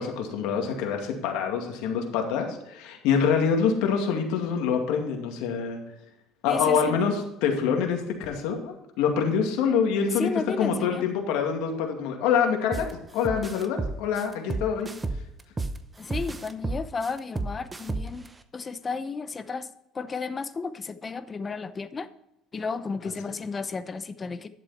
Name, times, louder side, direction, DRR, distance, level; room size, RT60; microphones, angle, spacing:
voice 1, 0.0-5.8 6.4-10.3 10.6-12.9 13.1-14.9, left 6 dB, 80° left, 3 dB, 2.2 m, -25 dB
voice 2, 6.5-7.0 10.1-11.1 16.0-18.3 18.5-19.7 19.9-22.1 22.5-24.5, left 4 dB, 25° left, 13 dB, 0.7 m, -33 dB
sound 1, 12.7-12.9 13.2-15.8 16.1-18.3, right 3 dB, 15° right, 0.8 m, -31 dB
11.5 x 7.5 x 4.3 m, 0.87 s
cardioid pair, 125°, 0 cm